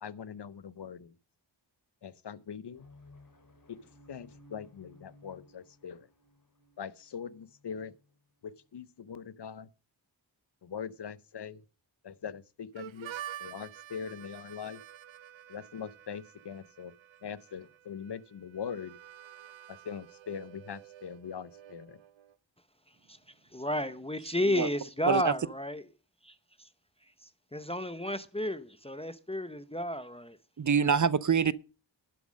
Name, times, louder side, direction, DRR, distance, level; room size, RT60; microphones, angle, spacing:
voice 1, 0.0-1.1 2.0-2.9 3.7-3.8 4.1-6.1 6.8-7.9 8.4-9.7 10.6-11.6 12.0-13.1 13.4-14.8 15.5-16.9 17.2-19.0 19.7-22.0, left 7 dB, 60° left, 0.8 m, -42 dB
sound 1, 2.7-9.1, left 2 dB, 45° left, 2.9 m, -59 dB
Harmonica, 12.8-22.4, right 12 dB, 90° right, 0.6 m, -49 dB
voice 2, 23.5-25.8 26.2-26.3 27.5-30.4, left 1 dB, 15° left, 0.8 m, -32 dB
voice 3, 30.6-31.5, right 6 dB, 40° right, 0.6 m, -25 dB
11.5 x 7.2 x 6.3 m
wide cardioid pair, 65°, 45 cm